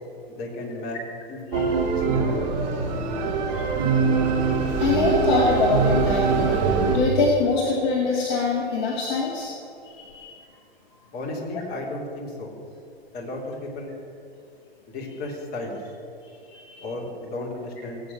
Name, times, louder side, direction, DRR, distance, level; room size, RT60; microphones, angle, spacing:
voice 1, 0.4-1.0 1.3-2.3 11.1-12.5 13.1-13.9 14.9-15.8 16.8-18.0, left 2 dB, 30° left, -1 dB, 3.5 m, -33 dB
sound 1, 1.5-7.0, right 5 dB, 45° right, 3.4 m, -23 dB
voice 2, 4.8-6.6 6.9-9.5 9.8-10.3 16.4-16.8, left 4 dB, 45° left, -1 dB, 2.1 m, -24 dB
18.0 x 8.6 x 7.5 m, 2.7 s
figure-of-eight pair, 105°, 31 cm